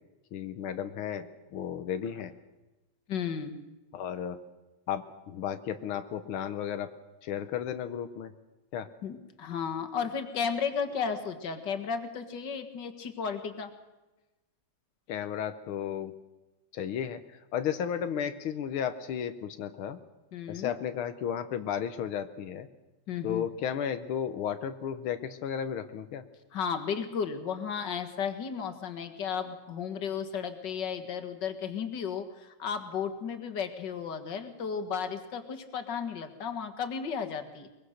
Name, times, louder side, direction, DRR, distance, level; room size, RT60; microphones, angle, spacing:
voice 1, 0.3-2.3 3.9-4.4 4.9-6.9 7.2-8.3 8.7-8.9 15.1-16.2 16.7-20.0 20.5-22.7 23.2-26.2, left 8 dB, 90° left, 9 dB, 1.9 m, -34 dB
voice 2, 3.1-3.6 9.0-13.7 20.3-20.7 23.1-23.5 26.5-37.7, left 6 dB, 60° left, 8 dB, 2.2 m, -34 dB
22.5 x 22.0 x 6.5 m, 1.1 s
omnidirectional pair, 2.3 m